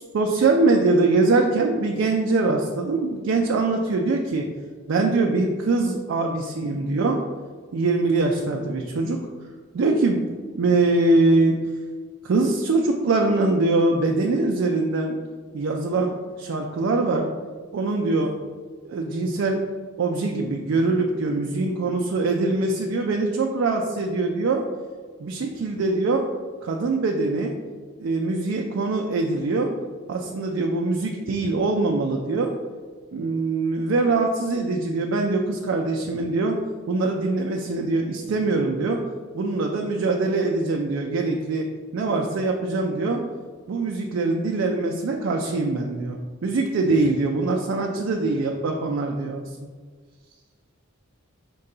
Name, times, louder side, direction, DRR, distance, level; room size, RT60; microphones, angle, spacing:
voice 1, 0.0-4.5 4.9-7.2 7.7-9.2 9.7-11.5 12.2-15.2 15.5-17.3 17.7-18.3 18.8-19.6 20.0-24.6 25.2-26.2 26.6-27.6 28.0-29.7 30.1-32.5 33.1-36.6 36.9-39.0 39.3-41.7 41.9-43.2 43.7-46.2 46.4-49.5, right 3 dB, 65° right, 1 dB, 0.4 m, -23 dB
5.4 x 2.2 x 3.7 m, 1.5 s
head